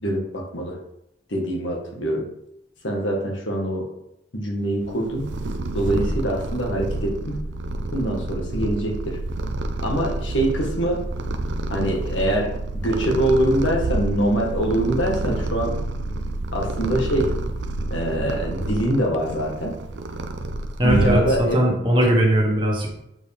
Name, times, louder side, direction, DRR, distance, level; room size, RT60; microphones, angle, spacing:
voice 1, 0.0-0.8 1.3-2.3 2.8-3.9 4.3-5.3 5.7-7.4 7.9-9.2 9.8-11.0 11.7-15.7 16.5-17.4 17.9-19.8 20.8-21.6 22.0-22.2, right 1 dB, 90° left, 1 dB, 1.6 m, -24 dB
Purr, 4.8-21.7, right 2 dB, 70° right, 0.6 m, -28 dB
voice 2, 20.8-22.9, equal, 25° right, -2 dB, 1.6 m, -19 dB
8.1 x 4.5 x 3.5 m, 0.82 s
head